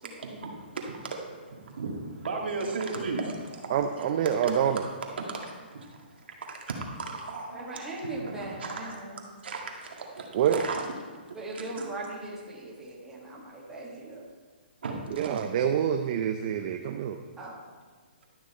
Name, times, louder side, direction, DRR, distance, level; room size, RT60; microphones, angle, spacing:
voice 1, 0.2-7.7 8.0-11.9 14.8-15.5, right 3 dB, 70° right, 0 dB, 1.9 m, -37 dB
voice 2, 3.7-4.8 10.3-10.6 15.2-17.2, right 9 dB, 40° right, 6 dB, 0.5 m, -26 dB
voice 3, 7.5-9.2 11.3-14.2 17.4-17.6, right 2 dB, 5° right, -5 dB, 1.7 m, -39 dB
12.0 x 6.2 x 4.2 m, 1.5 s
hypercardioid pair, 150°, 6 cm